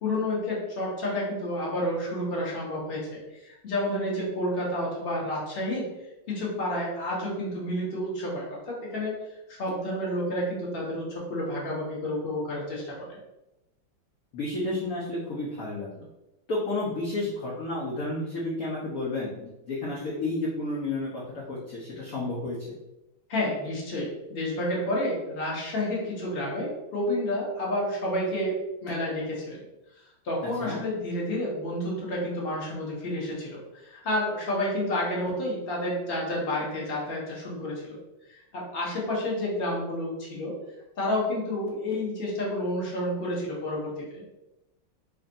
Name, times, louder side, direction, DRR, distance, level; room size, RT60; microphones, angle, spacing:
voice 1, 0.0-3.1 3.4-5.9 6.3-9.2 9.5-13.2 23.3-29.6 30.2-38.0 38.3-40.5 41.0-44.2, left 1 dB, 35° left, -5 dB, 1.1 m, -30 dB
voice 2, 14.3-16.1 16.5-21.1 21.3-22.8 30.6-30.8, left 2 dB, 60° left, -6 dB, 1.0 m, -31 dB
3.4 x 2.5 x 3.9 m, 0.94 s
omnidirectional pair, 2.2 m